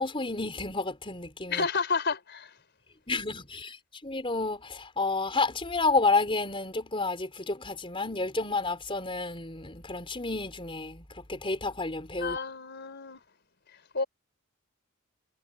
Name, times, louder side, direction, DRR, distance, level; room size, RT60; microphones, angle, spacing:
voice 1, 0.0-1.6 3.1-3.8 4.0-12.4, left 3 dB, 25° left, 4.6 m, -30 dB
voice 2, 1.5-2.5 12.2-13.2 13.9-14.0, left 4 dB, 55° left, 4.6 m, -30 dB
head